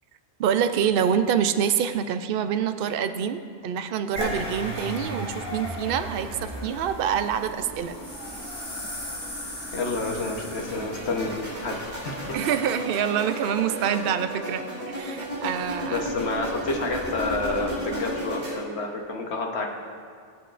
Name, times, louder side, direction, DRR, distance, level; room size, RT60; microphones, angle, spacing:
voice 1, 0.4-8.0 12.3-16.0, right 8 dB, 65° right, 9 dB, 0.7 m, -26 dB
sound 1, 4.2-12.4, equal, 25° left, 2.8 m, -36 dB
voice 2, 9.7-11.8 12.0-12.4 15.9-19.7, left 3 dB, 70° left, 1 dB, 1.3 m, -29 dB
sound 2, 10.5-18.5, equal, 40° right, 3.2 m, -34 dB
19.5 x 7.8 x 2.5 m, 2.2 s
omnidirectional pair, 1.1 m